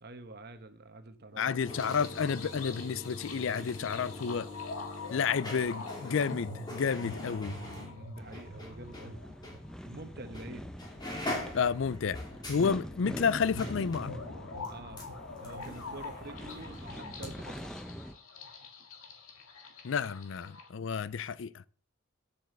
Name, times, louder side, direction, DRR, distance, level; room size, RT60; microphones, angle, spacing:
voice 1, 0.0-1.8 7.7-9.2 9.8-10.7 14.7-15.1 15.4-17.7, right 2 dB, 50° right, 1.1 m, -47 dB
sound 1, 1.3-9.1 9.4-9.6 10.3-10.5 10.8-17.3 17.6-17.7, left 1 dB, 20° left, 2.8 m, -43 dB
voice 2, 1.4-4.5 5.1-7.6 11.5-12.2 12.5-14.1 19.8-21.6, left 6 dB, 65° left, 0.4 m, -31 dB
sound 2, 1.6-20.7, left 3 dB, 85° left, 1.9 m, -45 dB
sound 3, 8.2-18.1, equal, 5° left, 0.6 m, -45 dB
7.7 x 7.0 x 6.7 m
head